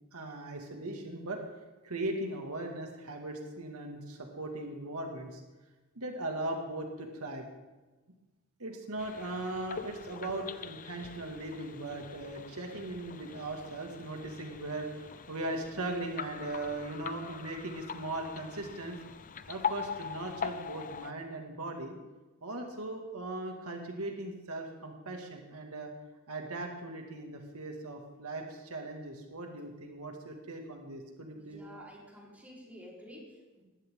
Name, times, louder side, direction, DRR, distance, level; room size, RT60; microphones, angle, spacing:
voice 1, 0.1-1.4 1.8-5.4 6.0-7.4 8.6-19.0 19.5-21.9 22.4-25.9 26.3-31.6, right 2 dB, 85° right, 2 dB, 2.2 m, -39 dB
sound 1, 9.0-21.1, left 6 dB, 40° left, 0.6 m, -42 dB
voice 2, 31.3-33.6, equal, 5° right, -4 dB, 4.2 m, -50 dB
20.0 x 15.5 x 3.8 m, 1.2 s
head